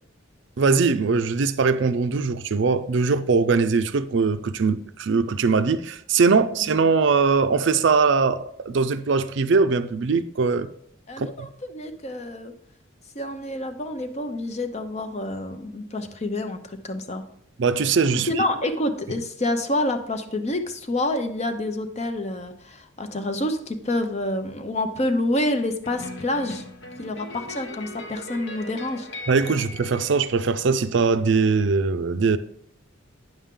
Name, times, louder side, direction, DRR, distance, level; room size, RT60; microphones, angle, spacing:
voice 1, 0.6-10.7 11.2-11.3 17.6-18.3 29.3-32.4, right 4 dB, 60° right, 0.4 m, -21 dB
voice 2, 11.1-12.5 13.1-17.2 18.3-26.6 27.0-29.1, left 1 dB, 30° left, 0.7 m, -28 dB
sound 1, 25.8-30.9, left 2 dB, 60° left, 1.2 m, -39 dB
9.3 x 7.1 x 3.7 m
head